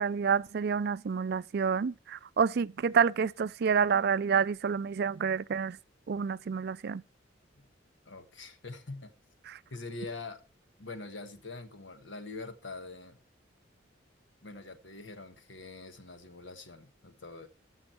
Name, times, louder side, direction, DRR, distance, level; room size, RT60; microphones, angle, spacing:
voice 1, 0.0-5.8 6.1-7.0 9.5-9.6, right 6 dB, 55° right, 0.4 m, -28 dB
voice 2, 8.0-9.1 9.7-10.4 10.8-13.2 14.4-17.5, left 3 dB, 80° left, 1.4 m, -44 dB
14.0 x 6.3 x 4.4 m
head